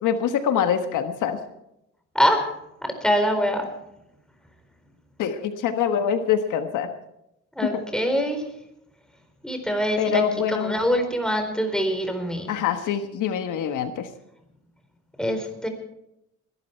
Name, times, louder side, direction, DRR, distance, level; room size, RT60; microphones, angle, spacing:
voice 1, 0.0-1.4 5.2-6.9 10.0-10.7 12.5-14.1, left 8 dB, 85° left, 8 dB, 1.4 m, -24 dB
voice 2, 2.1-2.5 2.8-3.7 7.6-8.4 9.4-10.2 10.5-12.5 15.2-15.7, equal, ahead, 5 dB, 4.2 m, -24 dB
21.0 x 12.5 x 4.5 m, 0.83 s
cardioid pair, 90°, 30 cm